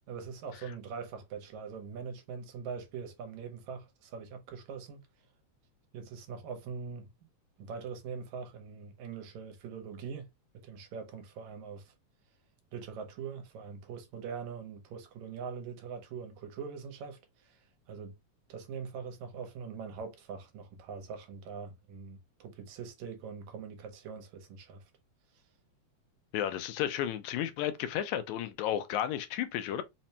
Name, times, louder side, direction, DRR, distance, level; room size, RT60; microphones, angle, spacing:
voice 1, 0.1-5.0 5.9-7.1 7.6-10.3 10.5-11.9 12.7-17.6 17.9-18.1 18.5-24.8, right 6 dB, 80° right, 2.1 m, -42 dB
voice 2, 26.3-29.8, left 11 dB, 85° left, 1.9 m, -33 dB
5.0 x 2.1 x 2.7 m
omnidirectional pair, 3.3 m